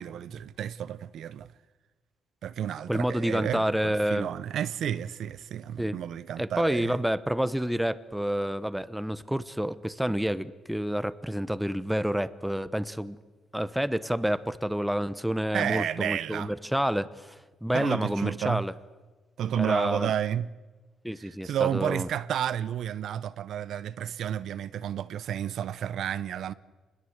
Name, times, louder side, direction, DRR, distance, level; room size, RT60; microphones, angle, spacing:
voice 1, 0.0-1.5 2.4-7.0 15.5-16.5 17.7-18.6 19.4-20.5 21.2-26.5, right 10 dB, 70° right, 0.8 m, -31 dB
voice 2, 2.9-4.3 5.8-6.0 6.4-13.2 13.5-18.7 19.6-20.1 21.0-22.1, equal, 5° right, 1.1 m, -29 dB
27.0 x 21.0 x 8.1 m
cardioid pair, 90°, 0 cm